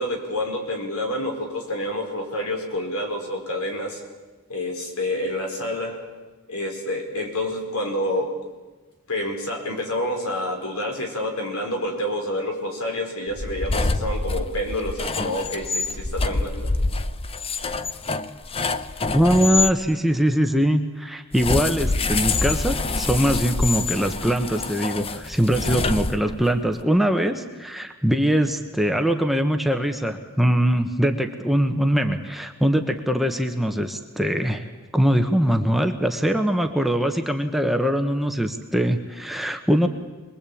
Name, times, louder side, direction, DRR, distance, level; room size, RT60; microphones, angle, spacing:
voice 1, 0.0-4.0 4.5-6.0 6.5-8.3 9.1-16.7, left 1 dB, 75° left, 3 dB, 4.9 m, -28 dB
sound 1, 13.3-19.7 21.3-26.6, left 3 dB, 25° left, 0.8 m, -26 dB
voice 2, 19.1-39.9, equal, ahead, 5 dB, 1.2 m, -22 dB
26.0 x 21.5 x 8.7 m, 1.3 s
head